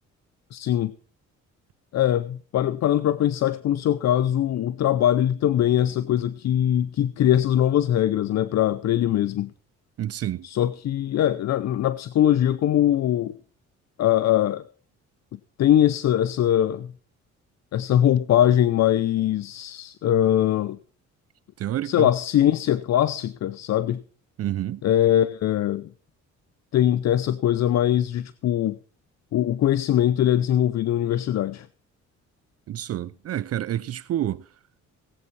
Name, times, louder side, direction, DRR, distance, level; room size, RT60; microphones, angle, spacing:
voice 1, 0.5-0.9 1.9-9.5 10.4-13.3 14.0-14.6 15.6-16.9 17.7-20.8 21.8-24.0 24.8-25.9 26.7-28.8 29.3-31.7, left 11 dB, 60° left, 0.6 m, -22 dB
voice 2, 10.0-10.5 21.6-22.1 24.4-24.8 32.7-34.5, right 12 dB, 55° right, 0.5 m, -28 dB
18.0 x 8.2 x 4.6 m
cardioid pair, 90°, 30 cm